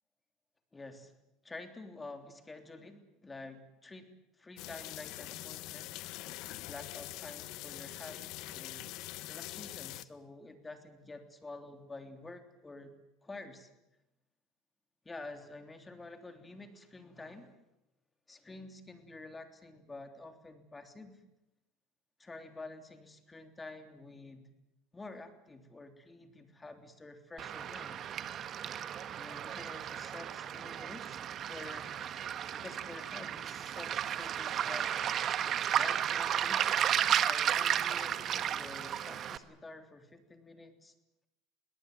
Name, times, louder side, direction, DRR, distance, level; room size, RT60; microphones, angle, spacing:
voice 1, 0.7-1.1 1.4-5.9 6.7-8.9 9.3-12.9 13.2-13.7 15.0-17.6 18.3-21.2 22.2-24.5 24.9-28.0 29.1-32.0 32.5-34.9 35.8-36.9 37.2-40.9, left 2 dB, 15° left, 7 dB, 3.3 m, -49 dB
sound 1, 4.6-10.0, left 17 dB, 65° left, 1.0 m, -44 dB
Waves surf, 27.4-39.4, right 9 dB, 45° right, 1.4 m, -33 dB
22.5 x 18.5 x 9.5 m, 0.92 s
supercardioid pair, 100°, 0 cm